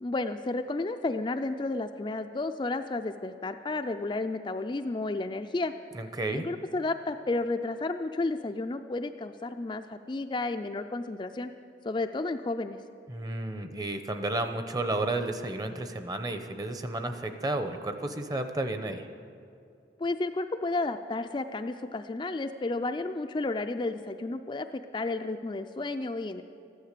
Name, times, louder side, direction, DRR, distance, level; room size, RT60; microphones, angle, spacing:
voice 1, 0.0-5.7 6.3-11.5 11.8-12.8 20.0-26.4, left 2 dB, 25° left, 6 dB, 0.3 m, -32 dB
voice 2, 5.9-6.5 13.1-19.1, right 2 dB, 20° right, 8 dB, 0.7 m, -32 dB
14.5 x 11.5 x 6.7 m, 2.5 s
head